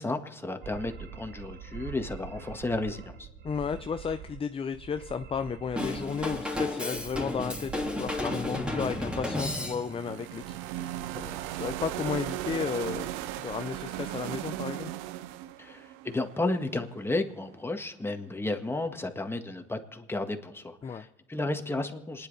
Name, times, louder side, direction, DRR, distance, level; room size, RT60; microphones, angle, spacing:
voice 1, 0.0-3.3 15.6-22.3, left 2 dB, 10° left, 5 dB, 1.6 m, -33 dB
sound 1, 0.6-4.4 4.7-6.6 6.9-9.2, right 7 dB, 55° right, 1.2 m, -45 dB
voice 2, 3.4-13.1 13.4-14.9 20.8-21.1, left 6 dB, 25° left, 9 dB, 0.6 m, -34 dB
Drum kit / Drum, 5.8-10.1, left 1 dB, 5° right, 2.9 m, -33 dB
sound 2, 9.0-17.1, right 14 dB, 90° right, 0.6 m, -37 dB
27.0 x 10.5 x 4.1 m, 1.1 s
supercardioid pair, 80°, 21 cm